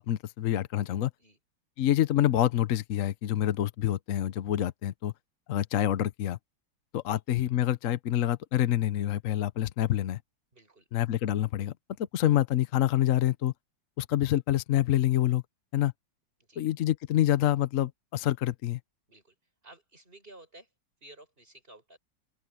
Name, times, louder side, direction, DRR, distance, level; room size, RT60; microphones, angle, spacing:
voice 1, 0.1-1.1 1.8-5.1 5.5-6.4 6.9-10.2 10.9-11.7 12.1-13.5 14.0-15.4 15.7-15.9 16.6-18.8, left 12 dB, 60° left, 0.9 m, -27 dB
voice 2, 10.5-10.9 16.5-16.6 19.1-19.3 19.6-20.7 21.0-22.0, right 2 dB, 25° right, 7.4 m, -53 dB
open air
omnidirectional pair, 2.1 m